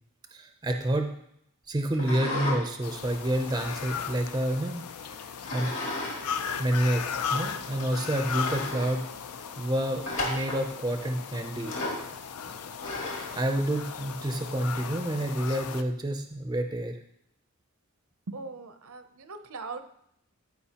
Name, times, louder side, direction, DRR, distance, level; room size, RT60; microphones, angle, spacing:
voice 1, 0.3-1.1 1.7-5.7 6.6-7.0 7.3-9.1 9.6-11.8 13.4-17.0, right 1 dB, 20° right, 5 dB, 0.5 m, -29 dB
sound 1, 1.9-2.6 3.0-4.4 5.4-6.2 6.5-6.6 7.3-7.4 7.8-7.9 8.2-8.9 10.0-10.6 11.6-12.1 12.8-13.4, left 1 dB, 60° left, 2.1 m, -34 dB
sound 2, 2.8-15.8, left 6 dB, 85° left, 0.5 m, -37 dB
voice 2, 18.3-19.8, right 3 dB, 70° right, 9 dB, 0.6 m, -40 dB
14.0 x 4.9 x 2.9 m, 0.75 s
head